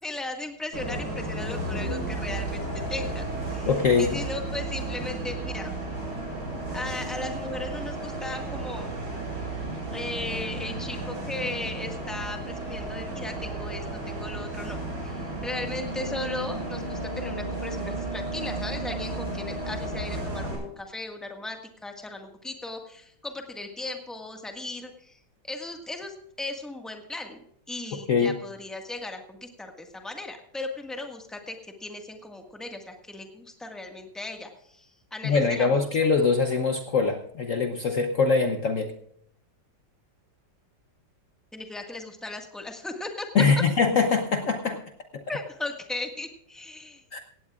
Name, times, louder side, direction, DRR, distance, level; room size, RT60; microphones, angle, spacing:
voice 1, 0.0-2.6 2.9-3.7 4.0-5.7 6.7-9.0 9.9-25.2 25.4-36.1 41.5-43.3 45.3-47.2, left 2 dB, ahead, 3 dB, 1.5 m, -37 dB
Bus, 0.7-20.5, right 2 dB, 75° right, 6.8 m, -33 dB
voice 2, 3.7-4.2 28.1-28.4 35.2-38.9 43.3-44.8 47.1-47.2, left 5 dB, 55° left, 6 dB, 1.1 m, -23 dB
17.0 x 16.5 x 2.4 m, 0.69 s
omnidirectional pair, 1.9 m